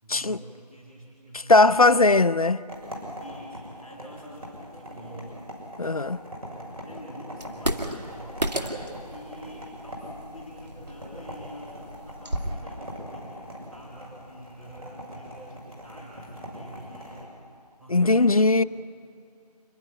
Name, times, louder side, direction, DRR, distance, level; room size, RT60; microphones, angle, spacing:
voice 1, 0.0-2.0 3.2-5.4 6.8-8.6 9.1-17.4 17.8-18.4, equal, ahead, 3.6 m, -46 dB
voice 2, 1.3-2.6 5.8-6.2 17.9-18.6, left 3 dB, 60° left, 0.5 m, -19 dB
sound 1, 2.7-17.3, equal, 60° right, 6.4 m, -42 dB
sound 2, 7.4-12.5, right 1 dB, 75° right, 2.2 m, -33 dB
27.5 x 11.5 x 9.9 m
figure-of-eight pair, 170°, 21 cm